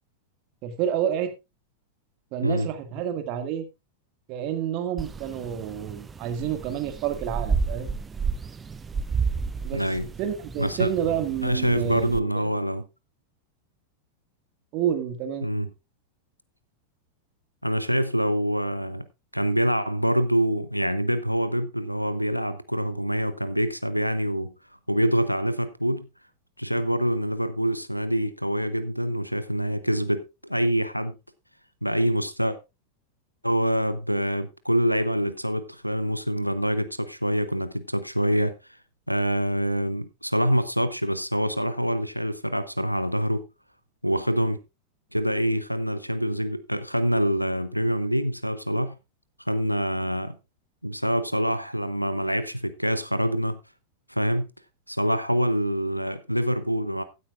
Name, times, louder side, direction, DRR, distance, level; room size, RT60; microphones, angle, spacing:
voice 1, 0.6-1.3 2.3-3.7 4.3-7.9 9.6-9.8 10.2-12.5 14.7-15.5, right 9 dB, 40° right, 1.9 m, -29 dB
sound 1, 5.0-12.2, right 5 dB, 15° right, 0.7 m, -32 dB
voice 2, 9.7-10.1 10.6-10.9 11.4-12.8 15.4-15.7 17.6-19.1 19.3-24.5 24.9-26.1 26.6-31.2 31.8-32.6 33.4-38.5 39.1-43.5 44.0-44.6 45.1-49.0 49.4-50.4 50.8-53.6 54.1-54.5 54.9-57.0, equal, 90° right, 0.7 m, -25 dB
16.0 x 9.4 x 2.5 m
figure-of-eight pair, 90°, 0 cm